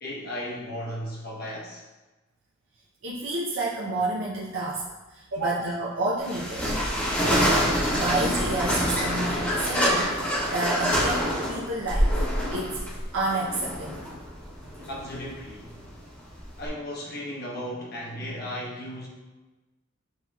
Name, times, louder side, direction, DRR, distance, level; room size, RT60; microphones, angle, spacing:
voice 1, 0.0-1.8 14.9-15.8 16.6-19.1, equal, 50° left, -4 dB, 1.1 m, -35 dB
voice 2, 3.0-6.7 7.2-12.1 12.5-12.8 13.1-14.1, right 2 dB, 65° right, -6 dB, 0.6 m, -30 dB
sound 1, 6.2-16.7, equal, 10° left, 0.9 m, -26 dB
7.1 x 2.9 x 2.3 m, 1.2 s
head